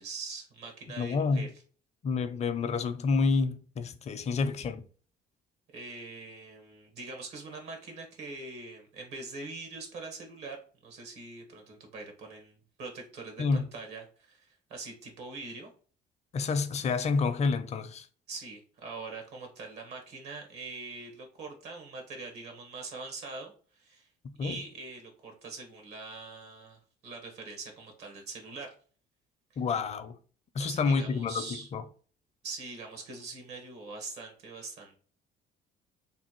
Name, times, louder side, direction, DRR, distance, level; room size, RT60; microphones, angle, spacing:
voice 1, 0.0-1.5 5.7-10.6 10.8-15.7 18.3-24.1 24.4-28.7 30.6-31.7 32.4-35.0, right 3 dB, 80° right, 1.5 m, -43 dB
voice 2, 1.0-1.5 2.0-4.8 13.4-13.7 16.3-18.1 24.4-24.6 29.6-30.2 30.5-31.8, left 4 dB, 40° left, 0.6 m, -29 dB
3.4 x 2.5 x 4.4 m
cardioid pair, 110°, 17 cm